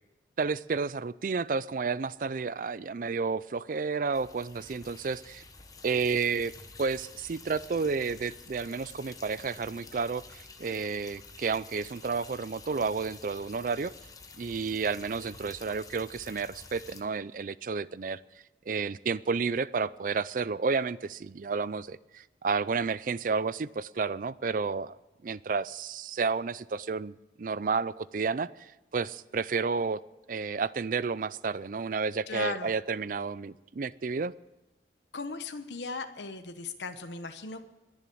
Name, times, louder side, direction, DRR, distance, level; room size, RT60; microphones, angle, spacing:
voice 1, 0.4-5.4 5.8-6.5 6.8-13.9 14.4-18.2 18.7-25.0 25.2-30.0 30.3-34.3, right 4 dB, 50° right, 18 dB, 0.4 m, -31 dB
sound 1, 4.1-17.0, left 4 dB, 20° left, 1.0 m, -50 dB
voice 2, 32.3-32.7 35.1-37.7, left 3 dB, 85° left, 8 dB, 1.0 m, -37 dB
21.0 x 7.3 x 8.5 m, 1.0 s
head